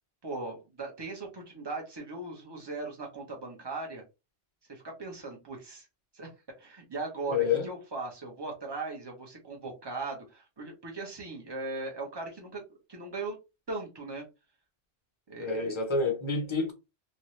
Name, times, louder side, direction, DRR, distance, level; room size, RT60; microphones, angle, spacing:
voice 1, 0.2-4.0 4.7-5.9 6.1-6.3 6.6-12.6 12.9-13.4 13.7-14.2 15.3-15.8, right 3 dB, 25° right, 0.8 m, -38 dB
voice 2, 7.3-7.7 15.4-16.7, left 4 dB, 30° left, 0.7 m, -28 dB
2.7 x 2.3 x 3.0 m
omnidirectional pair, 1.1 m